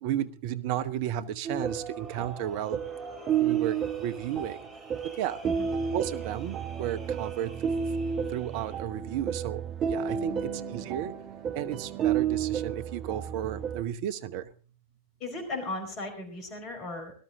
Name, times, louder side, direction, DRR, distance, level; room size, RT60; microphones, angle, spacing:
voice 1, 0.0-2.8 3.4-4.6 5.2-5.4 5.9-7.5 8.3-9.6 9.9-11.1 11.5-14.5, right 11 dB, 45° right, 0.9 m, -33 dB
sound 1, 1.4-13.8, right 8 dB, 30° right, 1.1 m, -32 dB
sound 2, 1.6-8.8, right 1 dB, 15° right, 5.7 m, -48 dB
voice 2, 10.3-10.9 15.2-17.1, left 2 dB, 35° left, 4.6 m, -37 dB
18.5 x 12.5 x 3.7 m
figure-of-eight pair, 90°, 0 cm